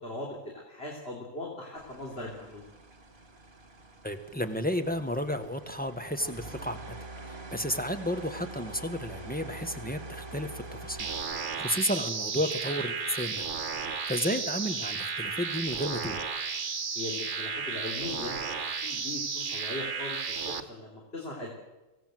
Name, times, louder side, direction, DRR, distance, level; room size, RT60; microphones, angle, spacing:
voice 1, 0.0-2.7 16.9-18.4 18.7-21.5, left 2 dB, 45° left, -2 dB, 3.7 m, -39 dB
sound 1, 1.8-11.2, right 2 dB, 35° right, 2.0 m, -45 dB
voice 2, 4.0-6.9 7.2-13.4 13.8-16.2, equal, 5° left, 7 dB, 1.5 m, -32 dB
sound 2, 11.0-20.6, right 5 dB, 55° right, 1.6 m, -33 dB
24.5 x 17.0 x 7.8 m, 1.1 s
omnidirectional pair, 1.5 m